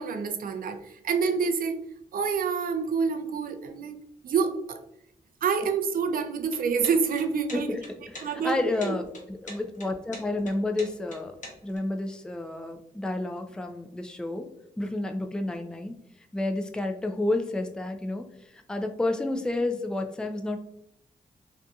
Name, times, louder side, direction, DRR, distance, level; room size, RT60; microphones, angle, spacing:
voice 1, 0.0-1.8 2.1-4.0 4.2-4.8 5.4-7.7 8.2-9.0, right 5 dB, 60° right, 7 dB, 0.4 m, -27 dB
sound 1, 6.4-11.8, left 1 dB, 50° left, 1.0 m, -44 dB
voice 2, 7.5-11.3 11.6-14.5 14.8-16.0 16.3-18.3 18.5-20.6, left 2 dB, 5° left, 5 dB, 0.4 m, -30 dB
2.6 x 2.5 x 2.3 m, 0.73 s
cardioid pair, 50°, 16 cm